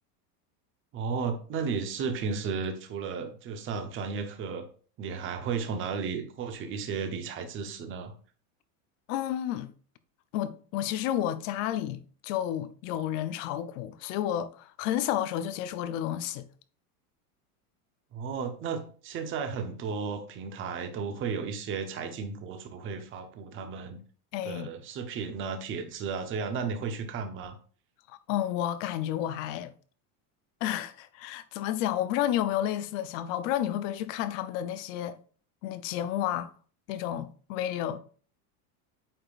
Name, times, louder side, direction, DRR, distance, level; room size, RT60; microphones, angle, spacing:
voice 1, 0.9-4.6 5.0-8.1 18.1-24.0 24.4-27.6, right 5 dB, 25° right, 0.8 m, -34 dB
voice 2, 9.1-9.7 10.3-16.5 24.3-24.7 28.1-29.7 30.6-35.2 35.6-36.5 36.9-38.0, left 11 dB, 55° left, 0.6 m, -31 dB
8.8 x 5.0 x 2.4 m
supercardioid pair, 165°, 46 cm